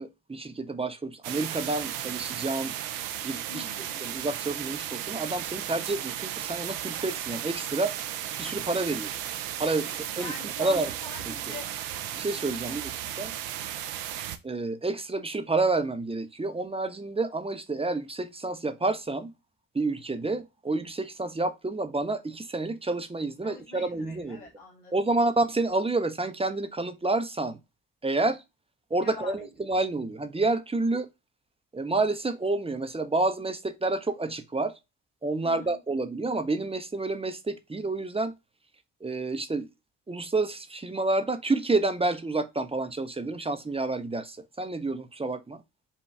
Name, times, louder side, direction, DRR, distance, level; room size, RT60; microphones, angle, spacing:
voice 1, 0.0-2.7 3.2-3.6 4.0-8.0 8.4-9.1 9.6-9.9 10.2-10.9 11.3-11.6 12.1-12.9 13.2-13.3 14.4-19.3 19.7-24.5 24.9-27.6 28.0-28.4 28.9-31.1 31.7-34.8 35.2-38.3 39.0-39.7 40.1-45.6, right 2 dB, 15° right, 0.6 m, -29 dB
sound 1, 1.2-14.4, right 11 dB, 80° right, 0.6 m, -35 dB
voice 2, 3.5-4.1 9.8-11.7 12.6-12.9 13.6-13.8 23.4-24.9 29.0-29.5 35.4-35.8, left 4 dB, 75° left, 1.9 m, -44 dB
5.5 x 2.3 x 3.2 m
hypercardioid pair, 45°, 46 cm